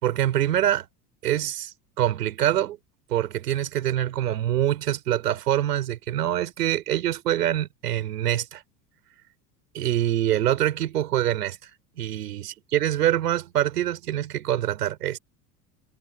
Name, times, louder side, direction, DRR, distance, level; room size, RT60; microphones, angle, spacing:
voice 1, 0.0-0.9 1.2-2.8 3.1-8.6 9.7-11.6 12.0-15.2, right 12 dB, 75° right, 4.7 m, -25 dB
figure-of-eight pair, 75°, 47 cm